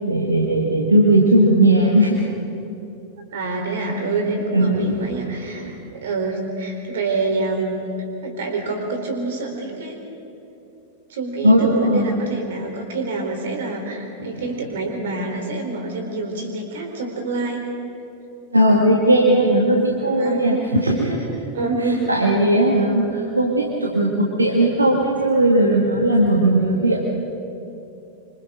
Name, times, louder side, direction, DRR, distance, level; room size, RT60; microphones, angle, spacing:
voice 1, 0.0-2.2 4.5-5.0 5.6-5.7 11.4-12.1 14.2-14.4 18.5-20.5 20.8-21.2 21.9-27.0, right 1 dB, 80° right, -2 dB, 2.1 m, -17 dB
voice 2, 3.3-7.7 8.2-10.0 11.1-17.7 20.0-20.6 21.5-22.1, right 3 dB, 60° right, 3 dB, 4.1 m, -26 dB
26.5 x 26.0 x 3.9 m, 2.8 s
figure-of-eight pair, 90°, 0 cm